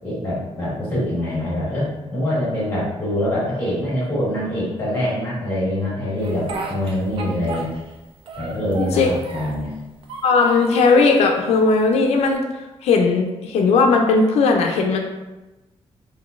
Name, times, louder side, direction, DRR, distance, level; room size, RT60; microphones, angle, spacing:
voice 1, 0.0-7.7 8.4-9.7, left 1 dB, 15° left, -7 dB, 1.4 m, -24 dB
Speech, 6.2-8.0 8.3-9.7 10.0-11.0 11.6-12.3, right 3 dB, 55° right, 0.4 m, -34 dB
voice 2, 8.8-9.1 10.2-12.4 12.8-15.0, left 4 dB, 85° left, 3 dB, 0.4 m, -17 dB
3.7 x 2.6 x 2.4 m, 1.1 s
wide cardioid pair, 145°, 11 cm